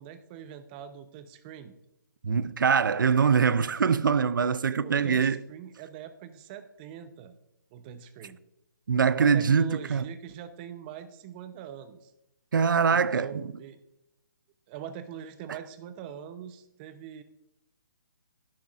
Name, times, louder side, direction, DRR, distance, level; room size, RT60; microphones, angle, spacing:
voice 1, 0.0-1.7 4.8-7.4 7.7-8.4 9.1-12.1 12.9-13.8 14.7-17.2, right 8 dB, 30° right, 0.8 m, -43 dB
voice 2, 2.2-5.4 8.9-10.0 12.5-13.5, right 6 dB, 70° right, 0.5 m, -23 dB
12.0 x 10.5 x 2.5 m
figure-of-eight pair, 140°, 11 cm